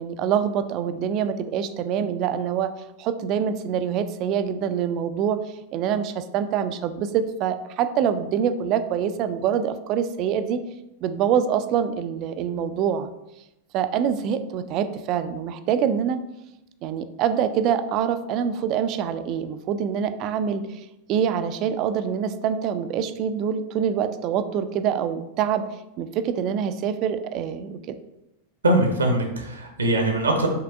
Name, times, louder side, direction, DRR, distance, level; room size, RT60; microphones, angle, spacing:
voice 1, 0.0-2.7 3.0-5.4 5.7-10.6 11.0-13.1 13.7-16.2 16.8-20.8 21.1-25.7 26.0-27.8, right 8 dB, 40° right, 11 dB, 0.3 m, -25 dB
voice 2, 28.6-30.5, right 1 dB, 75° right, 4 dB, 0.7 m, -22 dB
5.7 x 3.2 x 2.4 m, 0.91 s
figure-of-eight pair, 90°, 0 cm